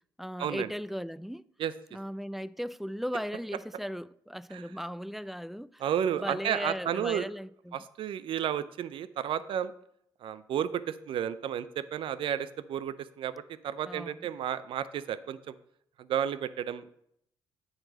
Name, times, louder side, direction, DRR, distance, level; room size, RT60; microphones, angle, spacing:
voice 1, 0.2-1.4 1.9-5.8 6.2-7.8 13.9-14.3, equal, ahead, 0.3 m, -37 dB
voice 2, 5.8-7.3 7.7-9.7 10.2-15.5 16.0-16.9, right 9 dB, 65° right, 0.5 m, -32 dB
8.8 x 4.1 x 6.4 m
supercardioid pair, 55°, 9 cm